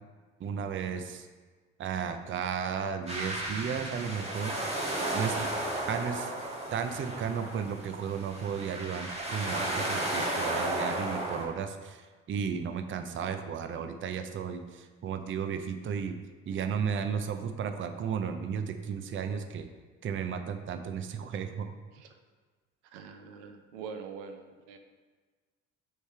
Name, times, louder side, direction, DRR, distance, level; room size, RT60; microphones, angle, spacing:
voice 1, 0.4-1.3 1.8-4.6 5.1-5.3 5.8-6.3 6.7-12.0 12.3-16.2 16.5-19.7 20.0-21.7, right 7 dB, 35° right, 8 dB, 0.6 m, -34 dB
sound 1, 3.1-11.4, right 1 dB, 20° right, 1.8 m, -34 dB
voice 2, 5.0-5.5 21.9-22.1 22.9-24.8, right 6 dB, 75° right, 6 dB, 0.7 m, -44 dB
6.4 x 3.4 x 4.4 m, 1.4 s
hypercardioid pair, 55°, 35 cm